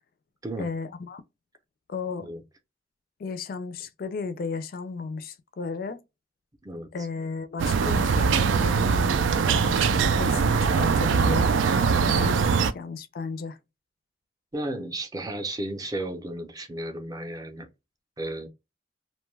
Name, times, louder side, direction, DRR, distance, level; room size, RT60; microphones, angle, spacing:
voice 1, 0.6-1.2 1.9-2.3 3.2-6.0 6.9-9.2 9.5-11.5 12.0-12.5 12.7-13.6, left 4 dB, 50° left, 0.4 m, -34 dB
sound 1, 7.6-12.7, right 5 dB, 90° right, 0.3 m, -22 dB
voice 2, 12.4-12.7 14.5-17.7 18.2-18.5, right 1 dB, 20° right, 0.5 m, -34 dB
2.5 x 2.2 x 3.2 m
head